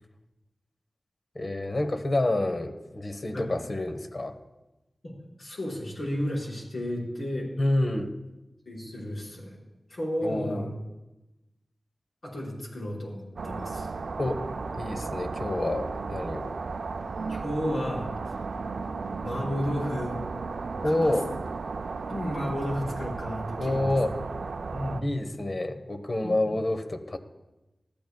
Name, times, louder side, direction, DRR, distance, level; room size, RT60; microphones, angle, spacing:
voice 1, 1.3-4.4 7.6-8.1 10.2-10.7 14.2-14.5 14.7-16.6 20.8-21.3 23.6-24.1 25.0-27.2, left 1 dB, 50° left, 8 dB, 1.1 m, -28 dB
voice 2, 5.0-7.5 8.6-9.6 9.9-10.7 12.2-13.9 17.3-18.1 19.2-20.2 20.8-21.2 22.1-24.0 24.7-25.1 26.2-26.4, equal, 75° left, -4 dB, 5.1 m, -33 dB
sound 1, 13.4-25.0, right 4 dB, 85° right, 0.4 m, -34 dB
20.0 x 13.5 x 2.3 m, 1.0 s
cardioid pair, 40°, 0 cm